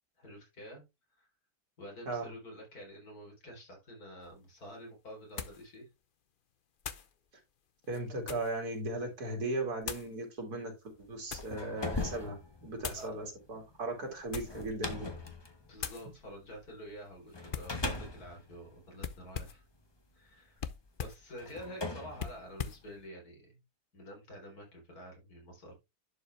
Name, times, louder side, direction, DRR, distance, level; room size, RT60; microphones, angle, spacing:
voice 1, 0.2-0.8 1.2-1.3 1.8-5.9 13.0-13.1 15.7-19.6 20.1-20.6 21.0-23.6 23.9-25.8, equal, 65° left, 1 dB, 4.2 m, -48 dB
sound 1, 4.2-4.3 5.4-5.7 6.8-7.1 7.8-8.6 9.8-10.1 10.9-11.6 12.8-13.1 14.2-14.7 15.1-15.4 15.8-16.1 17.5-17.8 19.0-19.7 20.6-21.3 22.2-22.9, left 7 dB, 45° left, 0.7 m, -41 dB
voice 2, 7.9-15.1, right 2 dB, 70° right, 3 dB, 3.0 m, -37 dB
sound 2, 11.1-16.7 17.3-19.8 20.6-20.7 21.4-23.1, left 2 dB, 20° left, 1.1 m, -40 dB
11.0 x 5.1 x 3.3 m, 0.23 s
omnidirectional pair, 1.7 m